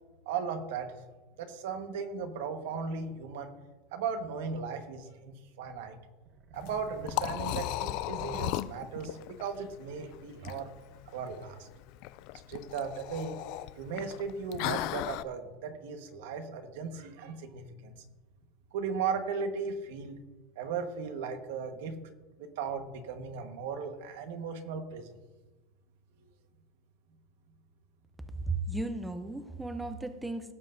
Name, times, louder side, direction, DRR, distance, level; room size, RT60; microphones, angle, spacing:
voice 1, 0.2-0.9 1.4-3.5 3.9-6.0 6.5-10.7 11.1-11.7 12.5-13.4 13.7-17.9 18.7-20.2 20.6-22.0 22.4-25.1, right 5 dB, 85° right, 6 dB, 1.3 m, -36 dB
sound 1, 6.2-9.0, right 2 dB, 35° right, 0.9 m, -49 dB
Liquid, 6.5-15.2, left 16 dB, 50° left, 0.3 m, -37 dB
voice 2, 28.4-30.5, right 2 dB, 5° right, 8 dB, 0.5 m, -35 dB
17.0 x 7.9 x 2.6 m, 1.2 s
supercardioid pair, 170°, 0 cm